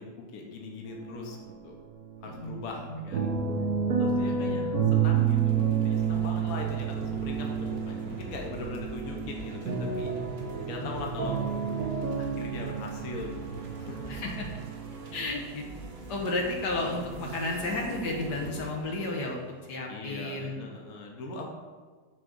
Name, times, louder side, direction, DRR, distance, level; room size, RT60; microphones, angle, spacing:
voice 1, 0.0-1.4 1.6-1.7 2.2-3.3 4.0-10.1 10.7-11.4 12.2-14.1 19.9-21.5, left 3 dB, 60° left, 0 dB, 1.4 m, -40 dB
sound 1, 0.9-1.6 1.9-14.7, right 7 dB, 65° right, 1.4 m, -30 dB
voice 2, 4.2-4.8 10.8-10.9 14.1-14.5 15.1-15.6 16.1-19.4 19.7-20.6, left 2 dB, 80° left, 0 dB, 1.6 m, -32 dB
sound 2, 4.9-20.4, right 3 dB, 45° right, 1.0 m, -42 dB
6.4 x 3.8 x 6.2 m, 1.5 s
omnidirectional pair, 1.8 m